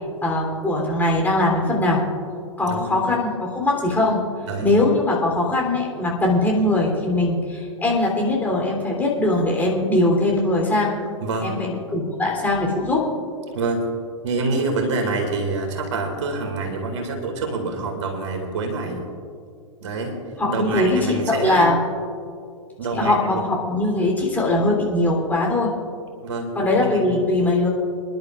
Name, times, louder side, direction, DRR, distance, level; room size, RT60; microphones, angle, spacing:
voice 1, 0.2-2.0 2.6-4.2 4.6-10.9 11.4-13.1 20.4-21.8 22.9-25.7 26.5-27.7, left 2 dB, 10° left, -2 dB, 3.3 m, -21 dB
voice 2, 11.2-11.6 13.5-13.9 14.2-19.1 19.8-20.1 20.5-21.7 22.8-23.4 26.2-27.0, right 3 dB, 60° right, 3 dB, 2.2 m, -26 dB
27.0 x 11.0 x 2.5 m, 2.3 s
figure-of-eight pair, 100°, 17 cm